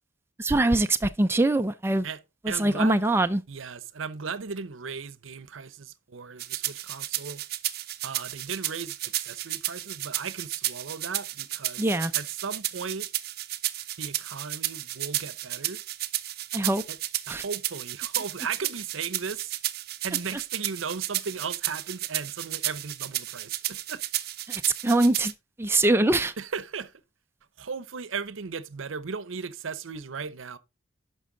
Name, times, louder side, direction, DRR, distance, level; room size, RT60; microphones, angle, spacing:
voice 1, 0.4-2.1 2.4-3.4 11.8-12.1 16.5-16.8 17.3-17.4 24.5-25.3 25.6-26.3, right 2 dB, 10° right, 0.4 m, -23 dB
voice 2, 2.5-3.0 3.5-7.4 8.0-11.9 12.1-13.1 14.0-15.8 16.9-17.0 17.3-19.6 20.0-24.0 26.4-26.9 27.6-30.6, right 5 dB, 85° right, 0.7 m, -36 dB
sound 1, 6.4-25.3, right 14 dB, 50° right, 0.6 m, -33 dB
11.0 x 5.5 x 3.8 m
head